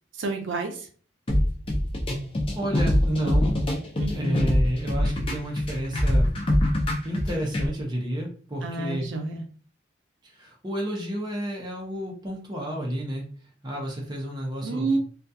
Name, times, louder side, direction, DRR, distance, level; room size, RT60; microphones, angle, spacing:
voice 1, 0.2-0.9 4.0-4.5 8.6-9.4 14.6-15.0, right 3 dB, 85° right, 4 dB, 0.5 m, -29 dB
sound 1, 1.3-7.7, left 1 dB, 30° left, 0.4 m, -24 dB
voice 2, 2.5-3.6 4.2-6.3 7.0-9.1 10.2-13.2 13.6-15.0, equal, 20° right, -1 dB, 0.6 m, -31 dB
2.3 x 2.2 x 2.6 m, 0.42 s
head